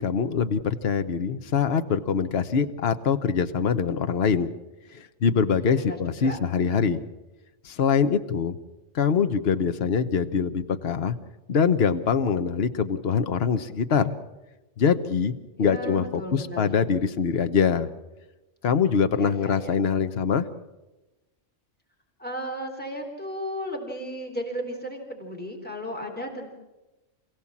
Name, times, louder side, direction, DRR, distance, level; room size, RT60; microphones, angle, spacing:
voice 1, 0.0-4.5 4.9-7.0 7.6-8.6 8.9-11.1 11.5-14.1 14.8-17.9 18.6-20.5, left 6 dB, 55° left, 10 dB, 1.2 m, -24 dB
voice 2, 5.5-6.4 15.6-16.7 19.1-19.7 22.2-26.5, equal, 5° left, 1 dB, 3.7 m, -35 dB
28.0 x 16.5 x 7.3 m, 1.1 s
omnidirectional pair, 1.3 m